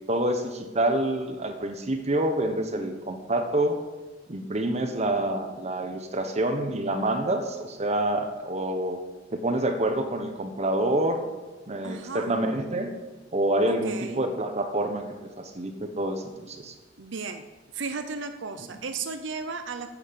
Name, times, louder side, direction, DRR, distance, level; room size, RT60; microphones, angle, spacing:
voice 1, 0.1-3.8 4.3-9.0 9.3-11.2 11.7-12.9 13.3-15.0 15.4-16.7 18.6-18.7, right 1 dB, 35° right, 6 dB, 1.1 m, -27 dB
voice 2, 11.8-12.3 13.6-14.2 17.0-17.4 17.7-19.9, right 4 dB, 65° right, 7 dB, 0.7 m, -34 dB
8.5 x 8.4 x 7.0 m, 1.3 s
head